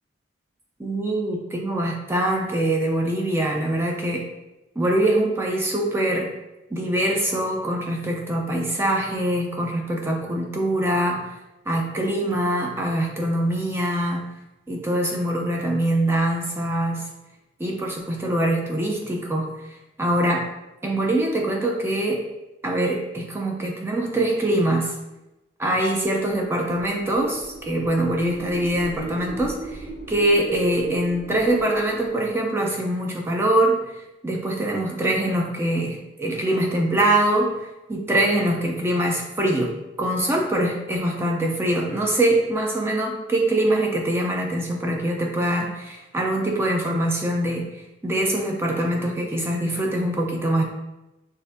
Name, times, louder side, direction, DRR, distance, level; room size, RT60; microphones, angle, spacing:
voice 1, 0.8-4.3 4.8-6.3 6.7-11.3 11.7-14.3 14.7-17.1 17.6-19.5 20.0-20.5 20.8-22.3 22.6-25.0 25.6-33.9 34.2-47.7 48.0-50.6, right 1 dB, 15° right, 0 dB, 0.4 m, -23 dB
sound 1, 26.4-32.4, right 2 dB, 45° right, 1.0 m, -38 dB
6.3 x 2.6 x 2.6 m, 0.98 s
head